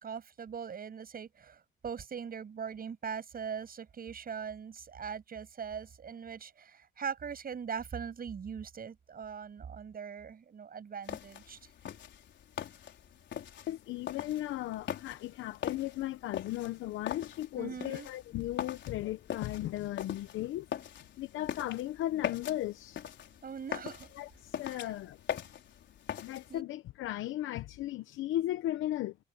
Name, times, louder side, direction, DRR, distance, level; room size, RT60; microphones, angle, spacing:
voice 1, 0.0-11.6 17.6-18.1 23.4-24.1 24.6-24.9 26.5-26.6, right 7 dB, 50° right, 7.5 m, -41 dB
sound 1, 11.0-26.6, left 9 dB, 65° left, 4.6 m, -42 dB
voice 2, 13.7-20.7 21.2-23.0 24.1-25.2 26.2-29.2, left 14 dB, 85° left, 0.8 m, -36 dB
cardioid pair, 90°, 20 cm